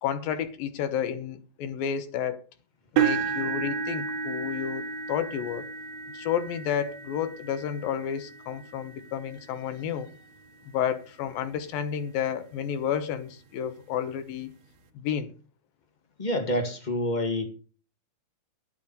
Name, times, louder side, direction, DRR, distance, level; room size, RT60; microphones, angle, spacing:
voice 1, 0.0-2.4 2.9-5.7 6.1-10.1 10.7-14.5 14.9-15.3, left 8 dB, 85° left, 2.9 m, -31 dB
sound 1, 3.0-11.0 11.6-11.9 12.3-12.4 13.8-13.9, right 6 dB, 65° right, 2.1 m, -33 dB
voice 2, 16.2-17.4, left 1 dB, 50° left, 0.5 m, -28 dB
11.0 x 8.2 x 5.3 m
omnidirectional pair, 4.0 m